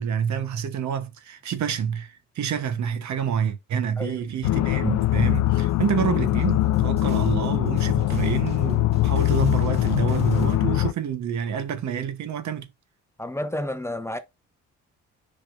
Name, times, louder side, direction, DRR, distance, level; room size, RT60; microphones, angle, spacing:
voice 1, 0.0-12.7, right 8 dB, 70° right, 1.1 m, -28 dB
sound 1, 4.4-10.9, left 15 dB, 70° left, 0.5 m, -22 dB
sound 2, 5.0-10.6, right 1 dB, 20° right, 2.0 m, -44 dB
voice 2, 13.2-14.2, left 1 dB, 10° left, 0.7 m, -30 dB
7.3 x 5.3 x 2.5 m
cardioid pair, 90°, 30 cm